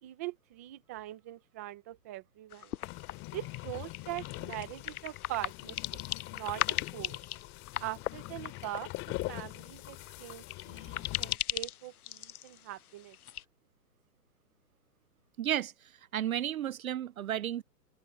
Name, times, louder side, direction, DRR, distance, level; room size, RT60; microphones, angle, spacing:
voice 1, 0.0-2.8 3.3-6.0 6.3-7.2 7.8-13.2, right 15 dB, 10° right, 0.5 m, -42 dB
sound 1, 2.5-13.4, left 11 dB, 60° left, 0.9 m, -39 dB
sound 2, 2.8-11.4, left 21 dB, 25° left, 3.9 m, -43 dB
voice 2, 15.4-15.7 16.1-17.6, right 11 dB, 55° right, 0.7 m, -32 dB
hypercardioid pair, 150°, 50 cm